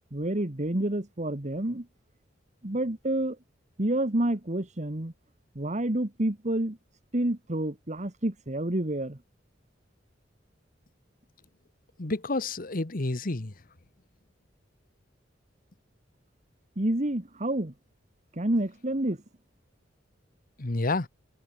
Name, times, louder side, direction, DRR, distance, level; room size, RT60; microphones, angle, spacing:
voice 1, 0.1-1.9 2.6-3.4 3.8-5.1 5.6-6.8 7.1-9.2 16.8-17.7 18.3-19.2, right 1 dB, 40° right, 1.8 m, -28 dB
voice 2, 12.0-13.5 20.6-21.1, left 2 dB, 50° left, 1.3 m, -29 dB
head